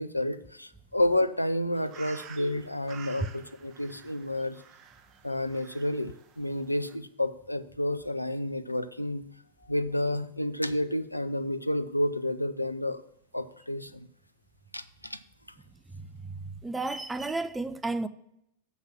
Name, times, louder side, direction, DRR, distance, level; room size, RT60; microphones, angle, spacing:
voice 1, 0.0-4.6 5.2-9.2 9.7-13.0 13.3-14.1 14.7-15.2, left 1 dB, 85° left, 0.5 m, -30 dB
sound 1, 1.7-7.0, right 7 dB, 35° right, 0.8 m, -51 dB
voice 2, 15.9-18.1, right 3 dB, 10° right, 0.5 m, -33 dB
7.3 x 5.6 x 7.3 m
figure-of-eight pair, 90°, 0 cm